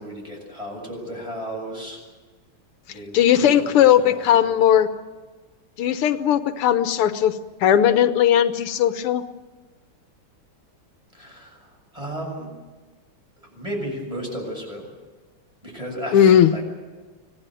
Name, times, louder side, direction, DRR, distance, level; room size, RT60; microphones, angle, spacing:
voice 1, 0.0-2.0 2.9-4.6 11.1-12.5 13.5-14.9 15.6-16.6, equal, 15° right, 0 dB, 7.4 m, -34 dB
voice 2, 3.1-4.9 5.8-9.2 16.1-16.5, left 10 dB, 90° left, 11 dB, 1.9 m, -17 dB
25.5 x 17.5 x 9.1 m, 1.3 s
omnidirectional pair, 2.4 m